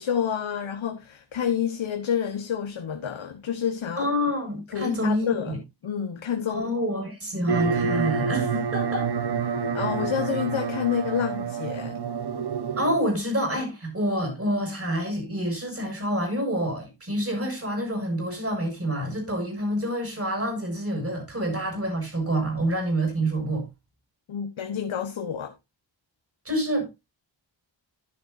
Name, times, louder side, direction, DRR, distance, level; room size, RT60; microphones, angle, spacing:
voice 1, 0.0-4.1 4.7-5.6 5.8-6.7 9.7-12.0 24.3-25.5, left 8 dB, 80° left, 1.3 m, -28 dB
voice 2, 4.0-5.6 6.5-9.1 12.8-23.6 26.4-26.9, equal, 30° right, 6.9 m, -27 dB
sound 1, 7.5-13.1, right 5 dB, 55° right, 1.1 m, -28 dB
11.5 x 10.5 x 2.6 m
wide cardioid pair, 130°, 46 cm